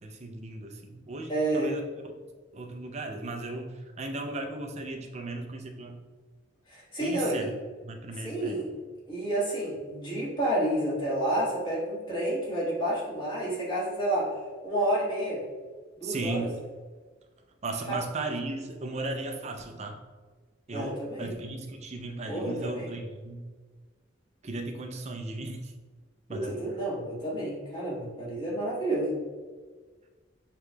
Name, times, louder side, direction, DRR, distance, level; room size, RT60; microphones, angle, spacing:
voice 1, 0.0-1.9 2.5-6.0 7.0-8.6 16.0-16.6 17.6-20.0 20.7-23.5 24.4-25.7 26.3-26.6, right 2 dB, 35° right, 4 dB, 0.5 m, -36 dB
voice 2, 1.3-1.8 6.7-7.5 8.2-8.8 9.1-14.3 14.6-15.4 16.0-16.5 17.9-18.0 20.7-21.3 22.3-22.9 26.3-29.2, right 1 dB, 25° left, -6 dB, 1.4 m, -30 dB
6.5 x 2.9 x 2.3 m, 1.4 s
head